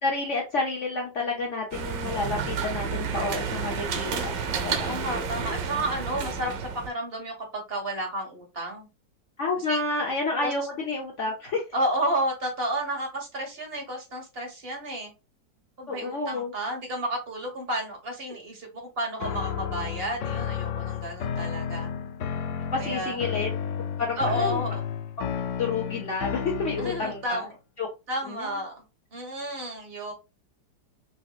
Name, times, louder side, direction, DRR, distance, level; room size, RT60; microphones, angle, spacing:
voice 1, 0.0-4.4 4.6-5.0 9.4-11.6 15.9-16.5 22.7-23.5 24.0-24.6 25.6-27.4 27.8-27.9 28.3-28.6, left 3 dB, 50° left, 1.0 m, -29 dB
sound 1, 1.7-6.9, right 6 dB, 85° right, 1.5 m, -30 dB
voice 2, 4.8-8.9 9.7-9.8 10.4-10.5 11.7-15.1 15.8-21.9 22.8-23.2 24.2-24.8 26.8-27.5 28.1-28.7 29.1-30.1, right 1 dB, 35° right, 1.7 m, -31 dB
sound 2, 19.2-27.3, left 8 dB, 80° left, 0.6 m, -32 dB
5.3 x 2.8 x 2.4 m
omnidirectional pair, 1.9 m